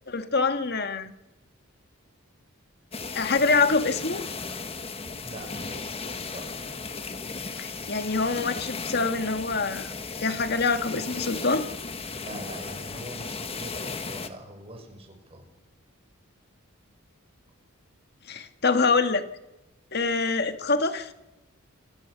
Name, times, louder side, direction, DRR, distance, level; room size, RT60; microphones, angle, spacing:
voice 1, 0.1-1.1 3.2-4.2 7.6-9.9 10.2-11.7 18.3-19.3 19.9-21.1, left 4 dB, 50° left, 8 dB, 1.8 m, -25 dB
sound 1, 2.9-14.3, left 4 dB, 25° left, 1.5 m, -36 dB
voice 2, 5.2-6.7 12.1-15.5, right 1 dB, 25° right, 3 dB, 6.1 m, -43 dB
28.0 x 20.0 x 6.8 m, 1.0 s
head